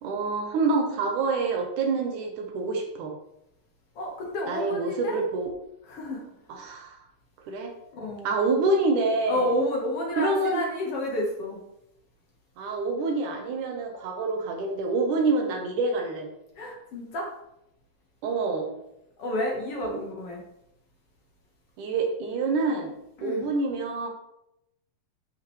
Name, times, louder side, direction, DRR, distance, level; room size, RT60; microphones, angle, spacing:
voice 1, 0.0-3.2 4.5-5.5 6.5-7.0 7.5-7.7 8.2-9.5 10.2-10.6 12.6-16.3 18.2-18.7 19.9-20.0 21.8-22.9 23.2-24.1, right 3 dB, 70° right, 3 dB, 2.3 m, -27 dB
voice 2, 3.9-5.2 5.9-6.2 7.9-8.3 9.3-11.6 16.6-17.3 19.2-20.4 23.2-23.5, left 1 dB, 60° left, -1 dB, 1.6 m, -30 dB
11.0 x 5.6 x 3.2 m, 0.83 s
omnidirectional pair, 4.3 m